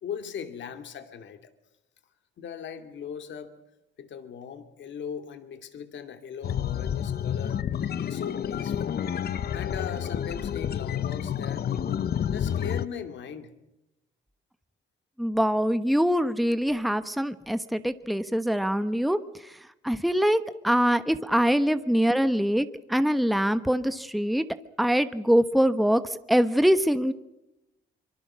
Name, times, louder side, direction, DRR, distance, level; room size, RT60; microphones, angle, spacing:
voice 1, 0.0-1.5 2.4-3.5 4.0-7.6 8.0-9.2 9.5-11.7 12.3-13.5, left 7 dB, 65° left, 8 dB, 2.6 m, -39 dB
sound 1, 6.4-12.9, left 9 dB, 50° left, 0.9 m, -29 dB
voice 2, 15.2-19.5 19.8-24.5 24.8-27.1, equal, ahead, 11 dB, 1.1 m, -24 dB
24.5 x 23.5 x 6.3 m, 0.92 s
cardioid pair, 90°, 20 cm